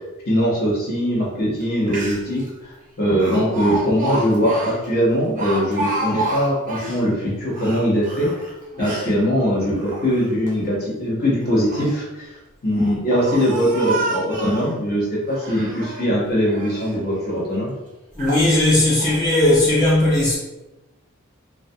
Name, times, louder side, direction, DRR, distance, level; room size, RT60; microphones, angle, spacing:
voice 1, 0.3-8.3 8.8-12.3 12.6-17.7, equal, 45° left, -5 dB, 0.9 m, -21 dB
Speech, 1.6-1.7 1.9-2.4 3.2-7.0 7.5-9.1 9.7-10.5 11.4-12.0 12.7-14.7 15.3-16.1 16.5-17.0 17.5-17.6 18.2-18.5 19.0-19.2, right 2 dB, 35° right, 0.5 m, -29 dB
voice 2, 18.2-20.4, left 1 dB, 20° left, -9 dB, 0.4 m, -17 dB
2.3 x 2.2 x 2.6 m, 0.99 s
head